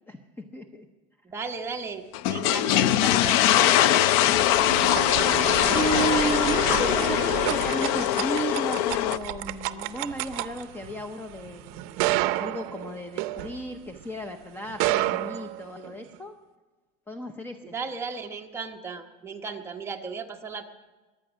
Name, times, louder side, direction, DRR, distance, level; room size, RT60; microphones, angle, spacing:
voice 1, 0.1-0.9 5.7-16.3 17.1-17.7, right 1 dB, 10° left, 7 dB, 0.7 m, -33 dB
voice 2, 1.2-4.2 17.7-20.6, right 5 dB, 15° right, 2 dB, 1.1 m, -35 dB
sound 1, 2.1-9.2, left 13 dB, 75° left, 0.6 m, -22 dB
sound 2, 3.7-14.1 14.6-16.2, right 16 dB, 60° right, 0.6 m, -31 dB
22.5 x 9.0 x 6.2 m, 1.2 s
cardioid pair, 160°, 18 cm